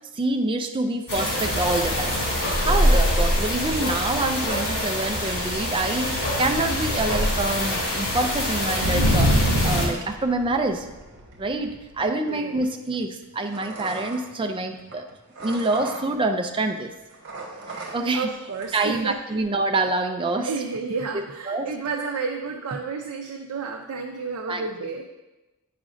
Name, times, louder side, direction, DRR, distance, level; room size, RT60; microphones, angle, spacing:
voice 1, 0.1-2.2 2.6-10.9 11.4-15.1 15.4-16.9 17.9-18.3 18.7-20.5 21.5-21.7 24.5-24.7, right 2 dB, 25° right, 5 dB, 0.4 m, -26 dB
sound 1, 1.1-9.9, equal, 85° left, 2.2 m, -23 dB
sound 2, 1.7-16.7 16.9-18.3 18.5-19.0, right 2 dB, 50° right, 1.2 m, -41 dB
voice 2, 12.0-12.6 17.7-19.2 20.1-25.0, right 4 dB, 75° right, 1 dB, 0.5 m, -31 dB
8.6 x 5.0 x 2.5 m, 1.1 s
head